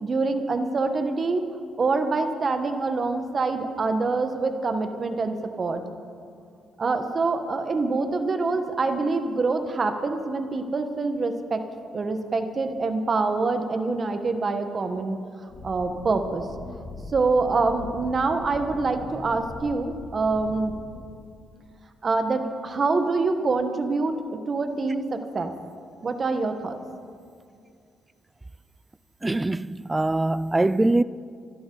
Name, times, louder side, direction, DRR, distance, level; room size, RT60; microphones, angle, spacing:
voice 1, 0.0-1.4 1.8-5.8 6.8-11.6 11.9-15.2 15.6-16.5 17.1-20.7 22.0-24.2 24.5-25.5 26.0-26.8, right 3 dB, 40° right, 1.2 m, -25 dB
sound 1, 15.5-21.0, left 2 dB, 70° left, 3.1 m, -41 dB
voice 2, 29.2-31.0, right 2 dB, 15° right, 0.4 m, -23 dB
28.0 x 11.0 x 3.9 m
cardioid pair, 90°, 0 cm